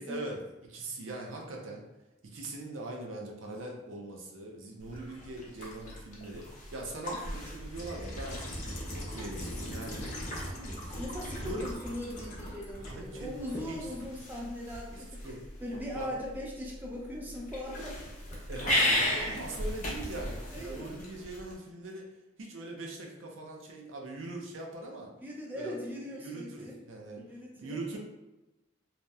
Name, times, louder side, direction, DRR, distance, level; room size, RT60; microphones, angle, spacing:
voice 1, 0.0-1.9 2.2-8.4 8.9-10.0 10.8-11.0 11.4-11.7 12.8-13.3 13.7-13.8 14.9-15.4 16.0-16.1 18.5-22.1 22.4-25.1 25.5-25.8 26.2-27.2 27.6-28.0, right 2 dB, 85° right, 0 dB, 0.5 m, -41 dB
sound 1, 4.8-21.5, left 1 dB, 40° left, 0.6 m, -36 dB
voice 2, 10.5-18.0 18.3-18.8 20.5-20.9 25.2-26.8 27.2-27.8, left 1 dB, 10° right, -3 dB, 0.3 m, -40 dB
2.8 x 2.0 x 2.3 m, 1.0 s
head